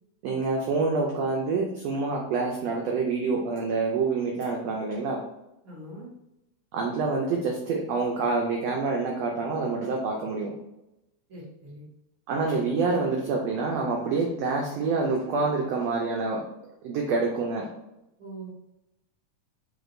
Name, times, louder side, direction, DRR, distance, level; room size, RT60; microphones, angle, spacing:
voice 1, 0.2-5.2 6.7-10.5 12.3-16.4 16.8-17.7, right 4 dB, 85° right, 0 dB, 1.4 m, -27 dB
voice 2, 5.6-6.1 11.3-11.8 18.2-18.5, right 2 dB, 50° right, -8 dB, 1.8 m, -42 dB
6.0 x 2.5 x 2.6 m, 0.88 s
omnidirectional pair, 3.6 m